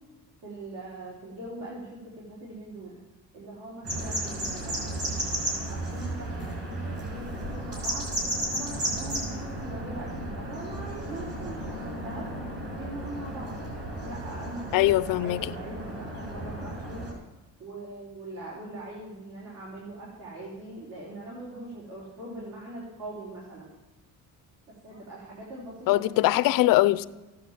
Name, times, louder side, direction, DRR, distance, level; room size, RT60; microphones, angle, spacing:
voice 1, 0.4-3.0 3.3-5.0 5.7-8.1 8.5-12.3 12.8-13.5 14.0-17.1 17.6-23.7 24.8-26.3 26.6-26.7, right 1 dB, 75° right, 4.7 m, -41 dB
sound 1, 3.8-17.1, right 1 dB, 45° right, 5.9 m, -34 dB
voice 2, 14.7-15.5 25.9-27.1, left 16 dB, 85° left, 0.7 m, -22 dB
15.0 x 10.0 x 7.6 m
cardioid pair, 180°, 33 cm